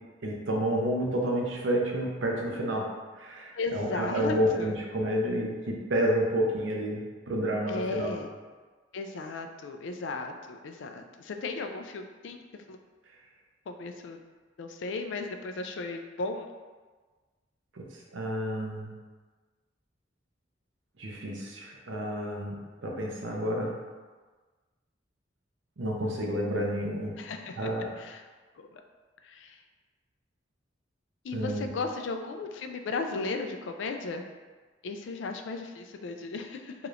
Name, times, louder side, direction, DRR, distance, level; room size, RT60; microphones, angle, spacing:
voice 1, 0.2-2.9 3.2-7.0 7.3-8.1 17.8-17.9 18.1-18.9 21.0-23.7 25.8-27.2 27.6-27.9 31.3-31.7, equal, 85° right, -1 dB, 0.7 m, -30 dB
voice 2, 3.5-4.7 7.7-8.3 8.9-12.4 12.7-12.8 13.7-14.2 14.6-16.5 27.2-27.7 28.0-28.2 28.6-28.7 29.2-29.6 31.2-34.2 34.8-36.8, left 3 dB, 75° left, 5 dB, 0.4 m, -35 dB
4.8 x 3.0 x 2.5 m, 1.4 s
head